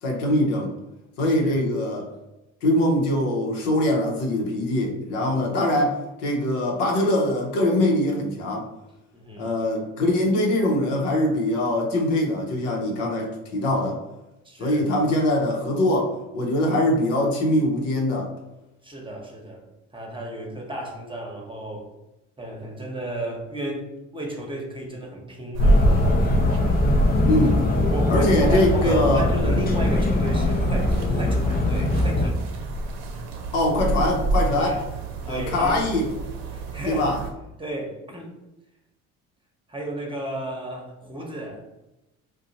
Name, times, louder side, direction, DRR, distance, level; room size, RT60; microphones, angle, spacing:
voice 1, 0.0-0.7 1.2-2.1 2.6-8.7 9.4-14.0 14.6-18.3 27.2-27.6 28.1-29.2 33.5-34.8 35.2-36.1 36.9-37.2, left 1 dB, 90° left, 0 dB, 0.8 m, -22 dB
voice 2, 1.2-1.6 9.1-9.5 14.4-14.9 18.8-19.6 19.9-21.9 22.4-25.9 27.9-32.4 34.5-34.8 35.3-35.9 36.5-37.1 37.6-38.3 39.7-41.6, right 1 dB, 15° right, 0 dB, 0.9 m, -33 dB
sound 1, 25.5-37.3, right 1 dB, 75° right, 0.6 m, -26 dB
sound 2, 25.6-32.3, left 2 dB, 25° left, 0.6 m, -22 dB
2.7 x 2.1 x 3.9 m, 0.98 s
hypercardioid pair, 65°, 35 cm